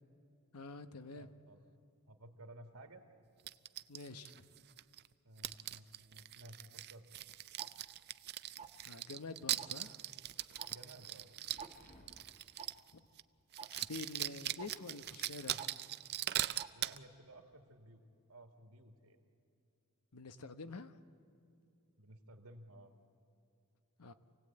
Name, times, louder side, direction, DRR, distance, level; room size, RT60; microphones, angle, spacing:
voice 1, 0.5-1.3 3.9-4.4 8.8-10.0 12.9-13.0 13.7-15.6 20.1-20.9 24.0-24.1, left 3 dB, 85° left, 10 dB, 1.0 m, -47 dB
voice 2, 1.2-1.6 2.1-3.0 5.2-7.1 10.7-11.3 16.7-19.2 22.0-22.9, right 1 dB, 70° right, 5 dB, 2.1 m, -56 dB
sound 1, 3.5-5.1 5.4-12.9 13.2-13.3 13.5-17.0, right 13 dB, 50° right, 0.5 m, -41 dB
Tick-tock, 7.6-7.7 8.6-8.9 9.6-9.8 10.6-10.7 11.0-11.1 11.6-11.7 12.6-12.7 13.6-13.7 14.6-14.7 15.6-15.7 16.6-16.7, right 6 dB, 30° right, 1.3 m, -48 dB
sound 2, 10.1-13.0, left 1 dB, 35° left, 1.8 m, -63 dB
27.5 x 18.0 x 8.7 m, 2.6 s
head